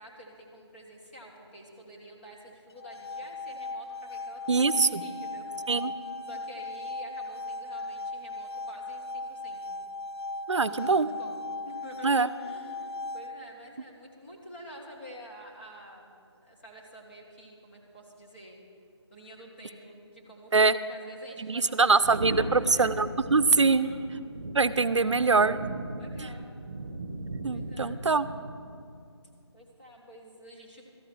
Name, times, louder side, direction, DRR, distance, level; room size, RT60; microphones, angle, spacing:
voice 1, 0.0-5.7 6.3-9.7 10.5-18.6 19.1-22.0 22.3-22.9 23.6-24.0 24.8-25.4 25.9-26.5 27.5-28.0 29.5-30.8, equal, 20° left, -2 dB, 1.6 m, -49 dB
sound 1, 2.7-13.7, left 2 dB, 60° left, 0.4 m, -38 dB
voice 2, 4.5-5.0 5.7-5.9 10.5-11.1 12.0-12.3 20.5-20.8 21.4-23.9 24.5-25.7 27.4-28.3, right 4 dB, 90° right, 15 dB, 0.6 m, -23 dB
sound 2, 22.0-28.8, right 2 dB, 30° right, 1.5 m, -38 dB
13.5 x 9.8 x 6.2 m, 2.3 s
figure-of-eight pair, 170°, 15 cm